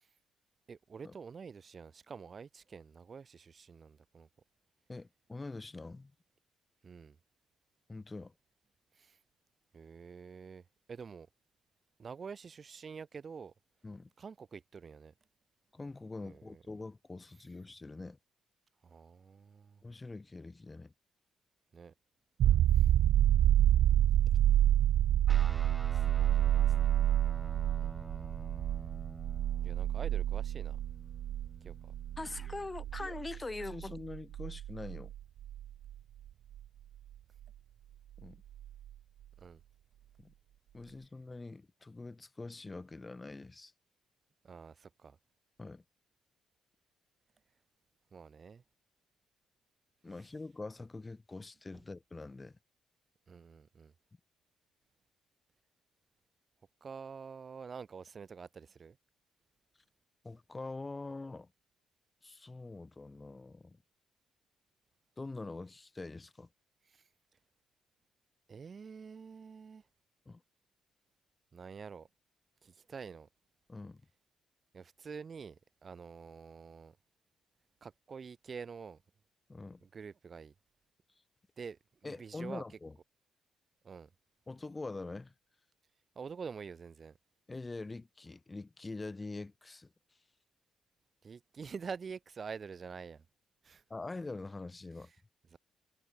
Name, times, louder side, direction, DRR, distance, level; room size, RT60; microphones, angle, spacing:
voice 1, 0.7-4.3 6.8-7.2 8.9-9.2 9.7-11.3 12.0-13.5 14.2-15.1 16.2-16.6 18.8-19.8 21.7-21.9 22.7-22.9 27.8-29.0 29.6-30.8 31.6-31.9 39.4-39.6 44.4-45.2 48.1-48.6 53.3-53.9 56.8-59.0 66.9-67.0 68.5-69.8 71.5-72.1 72.6-73.3 74.7-77.0 77.8-79.0 79.8-80.5 81.6-82.6 83.8-84.1 86.1-87.1 91.2-93.2 93.6-93.8 95.5-95.6, right 6 dB, 40° right, 1.2 m, -47 dB
voice 2, 4.9-6.1 7.9-8.3 13.8-14.1 15.7-18.2 19.8-20.9 22.4-22.6 32.2-35.1 38.2-38.4 40.2-40.3 40.7-43.7 45.6-45.8 50.0-52.6 60.2-61.5 62.2-63.8 65.2-66.5 70.3-70.4 73.7-74.0 79.5-79.8 82.0-82.9 84.5-85.3 87.5-89.9 93.9-95.1, left 3 dB, 20° left, 2.6 m, -44 dB
sound 1, 22.4-35.9 38.6-38.7, right 12 dB, 75° right, 0.5 m, -28 dB
Guitar, 25.3-32.9, right 1 dB, 10° right, 2.5 m, -49 dB
cardioid pair, 90°, 0 cm